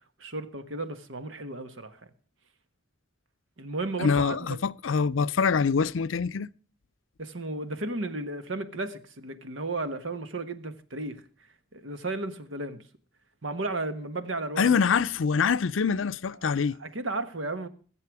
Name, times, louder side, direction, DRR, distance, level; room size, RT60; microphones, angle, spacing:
voice 1, 0.2-2.0 3.6-4.6 7.2-11.3 11.7-12.8 13.4-14.8 16.4-17.7, right 2 dB, 80° right, 1.4 m, -34 dB
voice 2, 4.0-6.5 14.6-16.8, left 5 dB, 80° left, 0.5 m, -25 dB
21.0 x 7.7 x 4.8 m
head